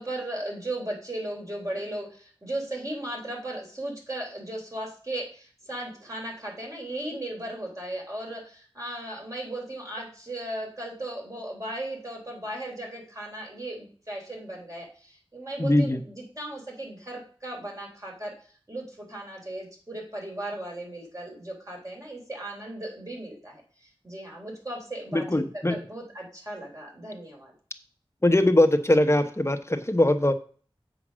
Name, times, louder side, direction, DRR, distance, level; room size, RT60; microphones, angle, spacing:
voice 1, 0.0-18.3 18.7-27.5, right 1 dB, 35° right, -1 dB, 3.7 m, -36 dB
voice 2, 15.6-16.0 25.1-25.8 28.2-30.3, left 1 dB, 25° left, 8 dB, 0.9 m, -21 dB
7.7 x 5.0 x 6.3 m, 0.42 s
wide cardioid pair, 50°, 10 cm